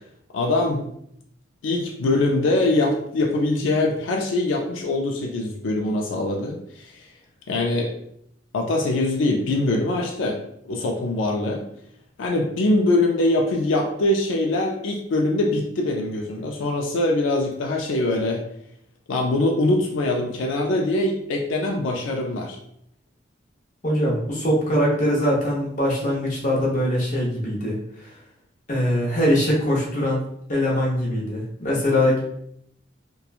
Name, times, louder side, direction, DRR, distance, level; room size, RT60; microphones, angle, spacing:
voice 1, 0.3-0.9 1.6-7.1 7.5-7.9 8.5-10.4 10.7-11.6 12.2-18.4 19.1-22.6, left 2 dB, 85° left, 1 dB, 0.4 m, -23 dB
voice 2, 23.8-28.1 28.7-30.2 30.5-32.2, equal, 40° left, -4 dB, 0.7 m, -22 dB
2.9 x 2.2 x 2.3 m, 0.72 s
head